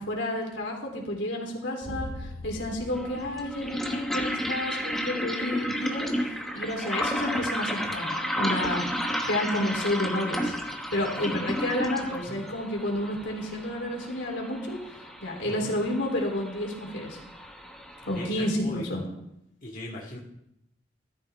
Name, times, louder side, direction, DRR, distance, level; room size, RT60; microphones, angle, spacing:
voice 1, 0.0-6.1 6.5-10.5 10.9-14.8 15.2-17.2 18.1-19.0, left 1 dB, 85° left, 0 dB, 3.4 m, -30 dB
sound 1, 1.8-4.4, equal, 45° right, 5.4 m, -40 dB
sound 2, 1.9-2.0 2.9-18.3, equal, ahead, 1.3 m, -33 dB
voice 2, 18.1-18.9 19.6-20.2, left 1 dB, 50° left, -5 dB, 2.0 m, -39 dB
14.5 x 12.5 x 3.6 m, 0.82 s
head